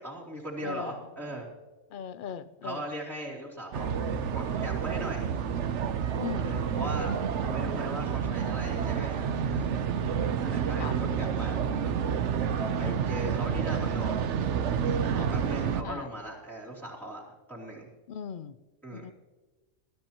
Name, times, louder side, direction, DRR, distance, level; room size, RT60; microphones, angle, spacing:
voice 1, 0.0-1.5 2.6-3.9 4.3-5.3 6.4-9.8 10.4-11.9 12.8-14.2 15.1-17.9 18.8-19.0, right 1 dB, ahead, 3.0 m, -39 dB
voice 2, 0.6-1.0 1.9-2.9 6.2-6.6 10.8-11.0 12.7-13.0 15.8-16.1 18.1-18.6 18.9-19.1, left 7 dB, 65° left, 0.5 m, -39 dB
sound 1, 3.7-15.8, right 7 dB, 60° right, 1.0 m, -29 dB
21.0 x 13.0 x 3.0 m
omnidirectional pair, 1.5 m